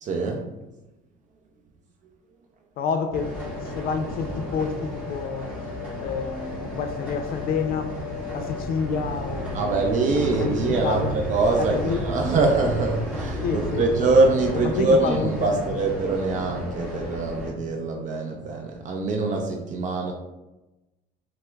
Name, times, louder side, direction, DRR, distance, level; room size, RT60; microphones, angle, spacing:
voice 1, 0.0-0.4 9.5-20.1, right 3 dB, 45° right, 2 dB, 0.5 m, -23 dB
voice 2, 2.8-3.3 3.6-5.5 6.0-7.9 8.3-9.6 10.4-11.1 11.7-12.0 13.4-13.9 14.7-15.9, left 5 dB, 55° left, 7 dB, 0.5 m, -29 dB
sound 1, 3.1-17.5, left 1 dB, 10° right, 1.4 m, -33 dB
sound 2, 6.0-9.4 9.8-17.7, equal, 10° left, 0.6 m, -47 dB
5.5 x 2.0 x 2.3 m, 1.0 s
cardioid pair, 110°, 18 cm